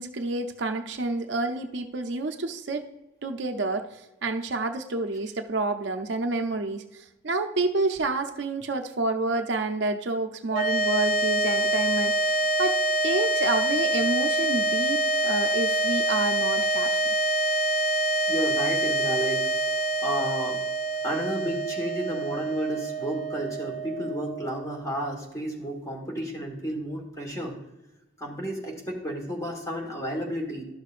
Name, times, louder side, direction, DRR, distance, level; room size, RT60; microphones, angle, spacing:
voice 1, 0.0-2.9 3.2-12.8 13.0-17.0, right 2 dB, 60° right, 6 dB, 0.5 m, -29 dB
sound 1, 10.5-24.9, right 1 dB, 40° left, 0.4 m, -26 dB
voice 2, 18.3-19.5 20.0-20.6 21.0-27.6 28.2-30.6, equal, 15° left, 0 dB, 1.4 m, -32 dB
12.0 x 6.5 x 2.5 m, 0.97 s
head